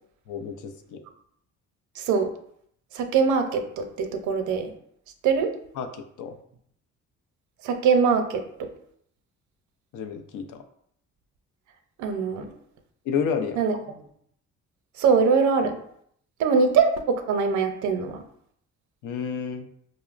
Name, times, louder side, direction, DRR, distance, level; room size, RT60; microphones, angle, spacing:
voice 1, 0.3-1.0 5.8-6.4 9.9-10.6 13.0-13.6 19.0-19.7, left 6 dB, 80° left, 5 dB, 0.5 m, -30 dB
voice 2, 2.0-2.3 2.9-4.7 5.2-5.5 7.6-8.7 12.0-12.4 13.6-13.7 15.0-15.8 16.4-18.2, right 5 dB, 75° right, 6 dB, 0.5 m, -22 dB
5.0 x 2.0 x 2.4 m, 0.68 s
cardioid pair, 90°, 30 cm